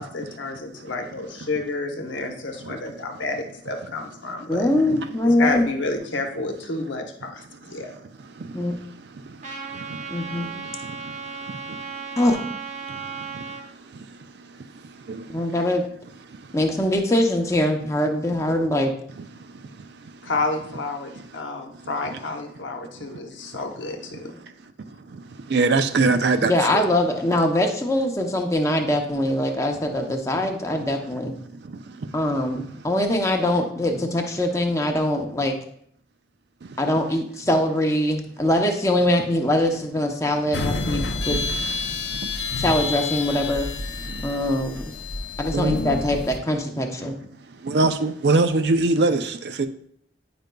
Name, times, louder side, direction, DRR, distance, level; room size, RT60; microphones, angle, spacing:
voice 1, 0.0-4.7 5.2-7.9 20.2-24.3, left 3 dB, 85° left, 0.9 m, -30 dB
voice 2, 4.5-5.7 8.5-8.8 10.1-10.5 12.2-12.4 15.3-15.8 16.5-18.9 26.5-31.3 32.1-35.5 36.8-41.4 42.6-43.7 44.2-44.9 45.4-47.2, left 1 dB, 15° left, 0.6 m, -22 dB
Trumpet, 9.4-13.6, right 5 dB, 40° right, 0.8 m, -35 dB
voice 3, 25.5-26.8 45.5-45.8 47.6-49.7, right 3 dB, 60° right, 0.4 m, -21 dB
sound 1, 40.5-46.4, left 3 dB, 65° left, 0.6 m, -29 dB
9.2 x 5.1 x 2.2 m
head